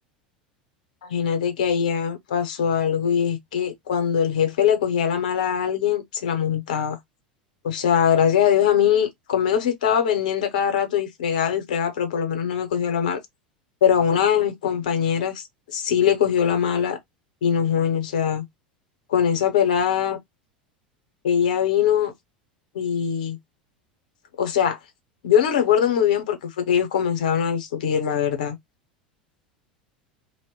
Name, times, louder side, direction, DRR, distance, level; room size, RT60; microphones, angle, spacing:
voice 1, 1.0-7.0 7.6-13.2 13.8-15.4 15.7-17.0 17.4-18.4 19.1-20.2 21.2-22.1 22.7-23.4 24.4-24.8 25.2-28.6, left 8 dB, 65° left, 0.8 m, -22 dB
2.2 x 2.1 x 3.6 m
figure-of-eight pair, 80°, 5 cm